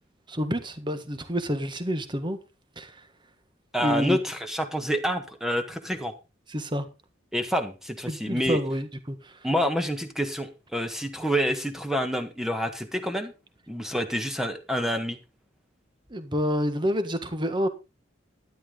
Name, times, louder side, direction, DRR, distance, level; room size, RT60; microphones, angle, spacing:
voice 1, 0.3-2.4 2.8-3.0 3.8-4.2 6.5-6.9 8.1-9.4 16.1-17.7, equal, 25° right, 1.6 m, -28 dB
voice 2, 3.7-6.1 7.3-8.6 9.4-13.3 13.7-15.2, equal, ahead, 1.5 m, -28 dB
12.5 x 11.0 x 3.9 m
head